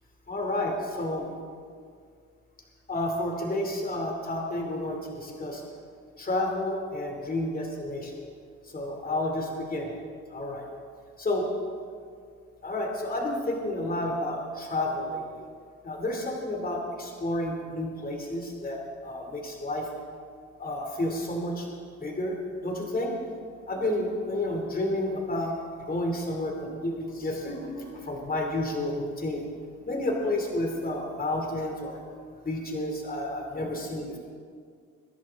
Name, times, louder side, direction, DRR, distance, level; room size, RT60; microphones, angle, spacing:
voice 1, 0.3-1.3 2.9-5.6 6.2-8.1 8.7-9.9 10.3-10.6 11.2-11.4 12.6-15.2 15.8-19.9 20.6-21.7 22.0-23.2 23.7-25.5 25.9-29.4 29.9-32.0 32.4-34.2, left 1 dB, 30° left, 1 dB, 2.9 m, -30 dB
22.5 x 10.5 x 3.7 m, 2.1 s
cardioid pair, 90°, 30 cm